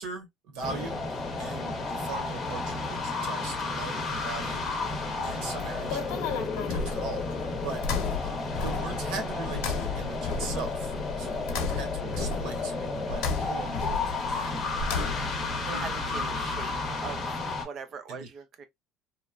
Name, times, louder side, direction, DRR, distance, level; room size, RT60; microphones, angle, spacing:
voice 1, 0.0-7.3 7.6-7.8 8.2-13.8 14.3-15.3 15.6-16.4 18.1-18.3, right 4 dB, 70° right, 1.2 m, -40 dB
sound 1, 0.6-17.6, left 3 dB, 20° left, 0.8 m, -32 dB
sound 2, 4.0-16.9, left 5 dB, 40° left, 0.3 m, -44 dB
voice 2, 4.8-5.2 11.2-11.5 15.6-17.3 17.6-18.6, right 5 dB, 35° right, 0.6 m, -42 dB
sound 3, 5.3-15.5, left 5 dB, 85° left, 0.9 m, -34 dB
3.0 x 2.2 x 2.3 m
cardioid pair, 170°, 0 cm